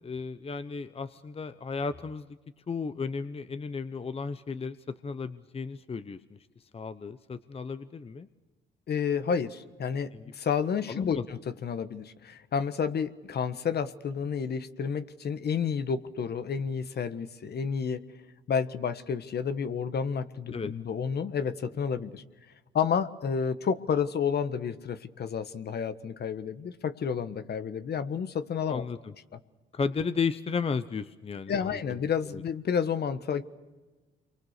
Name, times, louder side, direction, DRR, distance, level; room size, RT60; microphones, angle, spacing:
voice 1, 0.0-2.3 2.7-4.8 5.0-6.4 6.7-8.3 10.1-10.3 10.9-11.3 20.5-20.7 28.7-29.1 29.7-31.8 32.3-32.4, left 5 dB, 30° left, 12 dB, 0.9 m, -34 dB
voice 2, 8.9-18.0 18.5-22.2 22.7-28.8 31.5-33.4, left 6 dB, 55° left, 11 dB, 1.4 m, -30 dB
28.0 x 23.5 x 6.7 m, 1.2 s
cardioid pair, 90°, 20 cm